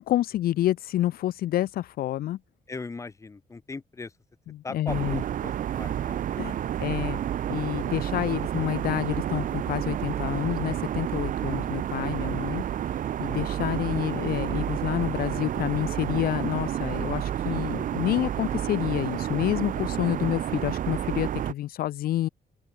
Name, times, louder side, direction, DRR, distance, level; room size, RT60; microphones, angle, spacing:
voice 1, 0.0-2.4 4.5-5.2 6.4-7.2 7.5-12.7 13.2-22.3, left 13 dB, 80° left, 0.6 m, -28 dB
voice 2, 2.7-4.1 4.6-6.7 13.2-13.5, left 4 dB, 20° left, 1.8 m, -39 dB
sound 1, 4.9-21.5, right 10 dB, 60° right, 1.4 m, -30 dB
open air
cardioid pair, 160°, 15 cm